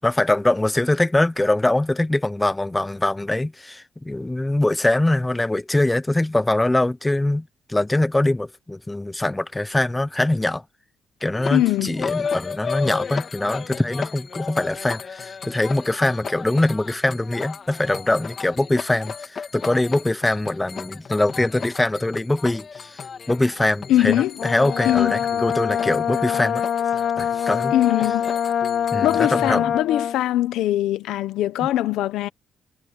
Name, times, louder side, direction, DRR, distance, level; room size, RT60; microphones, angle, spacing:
voice 1, 0.0-10.6 11.2-23.0 23.3-26.6 27.2-27.7 28.9-29.8, left 2 dB, 10° left, 0.8 m, -23 dB
sound 1, 11.3-29.6, left 6 dB, 45° left, 3.4 m, -34 dB
voice 2, 11.5-11.9 23.9-24.3 24.8-25.1 27.7-28.3 29.0-32.3, left 14 dB, 90° left, 1.0 m, -21 dB
Brass instrument, 24.4-30.2, left 8 dB, 65° left, 1.6 m, -24 dB
cardioid pair, 90°, 0 cm